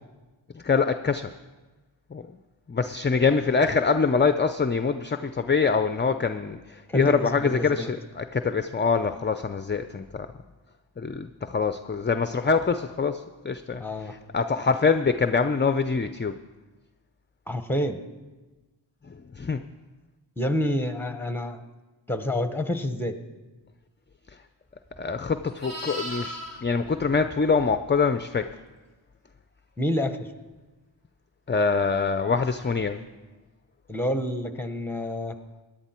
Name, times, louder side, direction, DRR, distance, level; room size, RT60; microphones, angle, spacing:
voice 1, 0.5-1.3 2.1-2.2 2.7-10.3 11.0-16.4 19.1-19.6 25.0-28.6 31.5-33.0, left 5 dB, 25° left, 10 dB, 0.5 m, -24 dB
voice 2, 6.9-7.9 13.8-14.1 17.5-18.0 20.4-21.6 22.1-23.2 29.8-30.3 33.9-35.3, left 1 dB, 5° left, 9 dB, 1.1 m, -28 dB
Livestock farm animals working animals, 24.8-28.1 32.5-32.7, equal, 35° right, 4.1 m, -39 dB
17.5 x 10.5 x 4.4 m, 1.2 s
wide cardioid pair, 45°, 47 cm